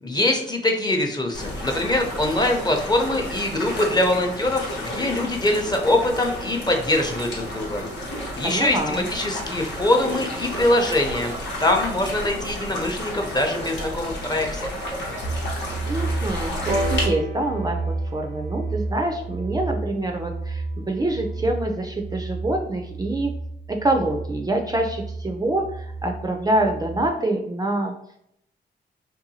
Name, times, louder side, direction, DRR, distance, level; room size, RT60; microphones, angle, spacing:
voice 1, 0.0-7.8 8.1-11.3 11.6-14.7, left 1 dB, 20° left, 3 dB, 0.6 m, -23 dB
sound 1, 1.3-17.1, left 1 dB, 80° left, 0.9 m, -32 dB
voice 2, 8.4-9.1 15.5-23.3 23.7-27.9, right 1 dB, 20° right, 2 dB, 0.4 m, -26 dB
sound 2, 15.2-27.1, right 3 dB, 60° left, 0.4 m, -31 dB
sound 3, 16.7-20.5 21.4-21.5, equal, 85° right, 0.5 m, -33 dB
2.6 x 2.3 x 2.7 m, 0.74 s
supercardioid pair, 55°, 19 cm